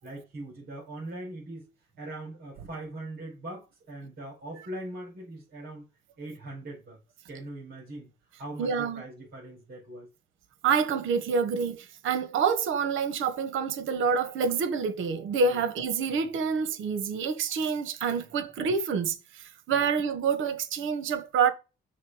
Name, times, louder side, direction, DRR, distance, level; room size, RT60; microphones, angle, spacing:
voice 1, 0.0-1.7 2.0-5.8 6.2-7.0 7.3-8.1 8.4-10.1 16.1-16.2 18.1-18.3 19.7-19.8, right 1 dB, 50° right, 4.5 m, -41 dB
voice 2, 8.6-9.0 10.6-21.5, right 6 dB, 80° right, 1.2 m, -27 dB
6.6 x 3.6 x 6.2 m
cardioid pair, 90°, 20 cm